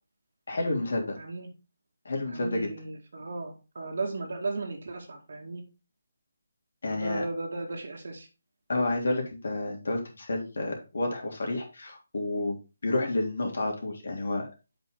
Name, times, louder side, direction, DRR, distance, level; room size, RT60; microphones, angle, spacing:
voice 1, 0.5-1.2 2.0-2.7 6.8-7.2 8.7-12.6 12.8-14.5, left 2 dB, 70° left, 1 dB, 3.1 m, -30 dB
voice 2, 1.2-1.5 2.3-5.6 6.8-8.3, right 3 dB, 65° right, 0 dB, 2.2 m, -36 dB
7.6 x 5.9 x 3.8 m, 0.30 s
figure-of-eight pair, 160°, 0 cm